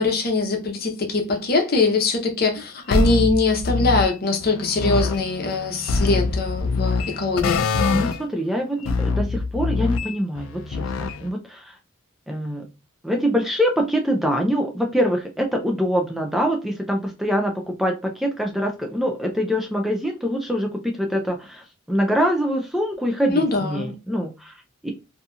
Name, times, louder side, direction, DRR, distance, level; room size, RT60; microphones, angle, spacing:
voice 1, 0.0-7.6 23.3-23.9, left 3 dB, 45° left, 0.7 m, -22 dB
sound 1, 2.9-4.1 4.4-8.2 8.8-11.3, left 4 dB, 75° left, 0.3 m, -24 dB
voice 2, 7.9-11.8 12.3-12.7 13.0-24.9, equal, ahead, 0.3 m, -24 dB
2.7 x 2.7 x 2.3 m
head